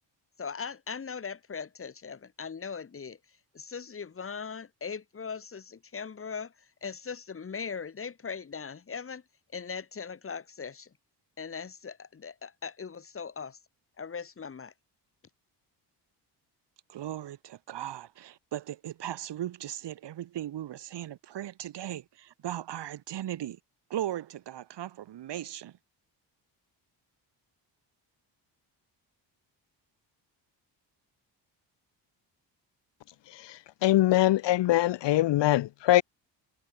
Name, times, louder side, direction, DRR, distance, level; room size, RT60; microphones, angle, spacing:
voice 1, 0.4-3.2 3.5-9.2 9.5-10.9 11.4-13.6 14.0-14.7, left 6 dB, 30° left, 6.4 m, -39 dB
voice 2, 16.9-23.6 23.9-25.7, right 12 dB, 70° right, 6.5 m, -37 dB
voice 3, 33.3-36.0, left 15 dB, 80° left, 1.2 m, -23 dB
cardioid pair, 170°, 43 cm